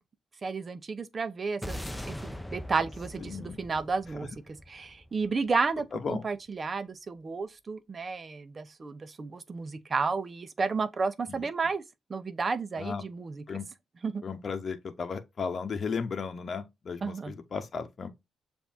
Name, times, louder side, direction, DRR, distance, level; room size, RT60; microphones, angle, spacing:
voice 1, 0.4-4.3 4.7-11.8 12.1-13.4 14.0-14.2 17.0-17.3, right 4 dB, 45° right, 0.7 m, -32 dB
sound 1, 1.6-6.1, left 1 dB, 10° left, 0.7 m, -41 dB
voice 2, 3.2-3.6 5.9-6.2 11.3-11.5 12.8-13.0 13.5-13.6 14.2-18.1, left 5 dB, 55° left, 0.9 m, -35 dB
6.9 x 2.6 x 2.7 m
supercardioid pair, 55°, 0 cm